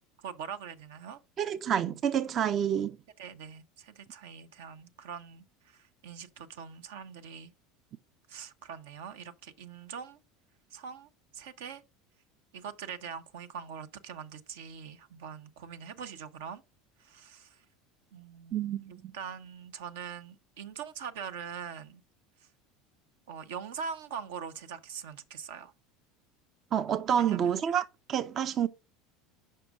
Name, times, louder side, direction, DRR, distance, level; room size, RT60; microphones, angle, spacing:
voice 1, 0.2-1.2 3.2-7.5 8.3-10.2 10.7-11.8 12.5-16.6 17.0-17.6 18.1-22.0 23.3-25.7 27.2-27.6, right 7 dB, 75° right, 0.7 m, -43 dB
voice 2, 1.4-3.0 18.5-19.1 26.7-28.7, right 9 dB, 45° right, 0.4 m, -28 dB
6.7 x 5.3 x 3.5 m
hypercardioid pair, 85°, 0 cm